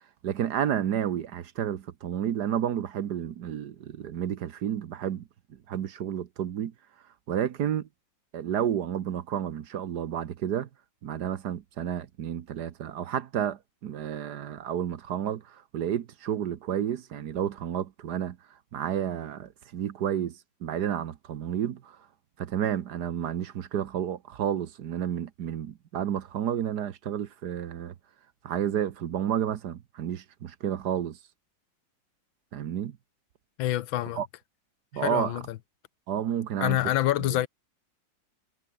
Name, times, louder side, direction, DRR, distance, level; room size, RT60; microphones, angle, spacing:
voice 1, 0.2-5.2 5.5-6.7 7.3-7.9 8.3-10.7 11.0-18.4 18.7-22.0 22.4-27.9 28.4-31.2 32.5-33.0 34.2-34.3 34.9-35.3 36.1-36.8, right 9 dB, 60° right, 1.4 m, -31 dB
voice 2, 33.6-34.2 34.9-35.6 36.6-37.5, left 14 dB, 85° left, 1.5 m, -26 dB
omnidirectional pair, 2.1 m